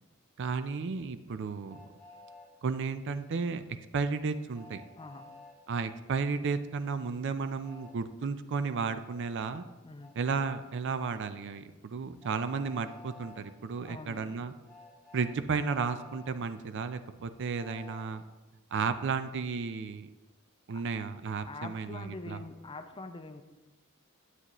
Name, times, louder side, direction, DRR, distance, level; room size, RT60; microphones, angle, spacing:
voice 1, 0.4-1.8 2.6-3.6 3.9-4.8 5.7-9.6 10.1-14.5 15.1-18.2 18.7-20.1 20.7-22.4, right 5 dB, 60° right, 11 dB, 0.4 m, -33 dB
Train, 1.7-2.5 4.5-5.6 7.6-7.9 10.0-10.1 12.2-13.4 14.6-16.3 17.6-18.1, left 3 dB, 5° left, 1.6 m, -52 dB
voice 2, 5.0-5.3 9.8-10.1 13.8-14.3 20.7-20.8 21.4-23.4, left 3 dB, 25° left, 8 dB, 0.5 m, -44 dB
9.8 x 8.0 x 3.0 m, 1.2 s
head